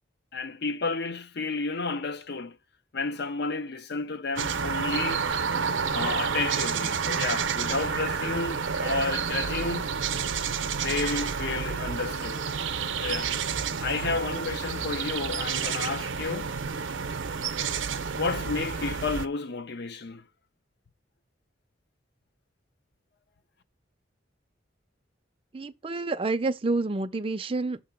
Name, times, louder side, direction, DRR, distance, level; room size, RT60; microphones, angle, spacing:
voice 1, 0.3-2.6 2.9-5.3 5.9-9.9 10.8-12.4 13.0-13.3 13.8-16.6 18.2-20.2, left 4 dB, 60° left, 0.6 m, -31 dB
sound 1, 4.4-19.3, right 6 dB, 80° right, 0.6 m, -30 dB
voice 2, 25.5-27.8, right 3 dB, 30° right, 0.4 m, -28 dB
6.6 x 2.9 x 5.7 m
head